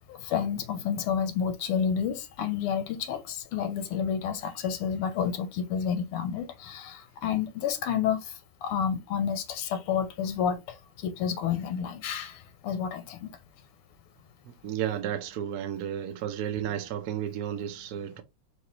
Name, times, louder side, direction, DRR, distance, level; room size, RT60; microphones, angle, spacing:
voice 1, 0.1-13.3, left 8 dB, 85° left, 1.7 m, -30 dB
voice 2, 14.6-18.2, right 10 dB, 75° right, 0.8 m, -32 dB
4.9 x 2.8 x 3.1 m
omnidirectional pair, 2.4 m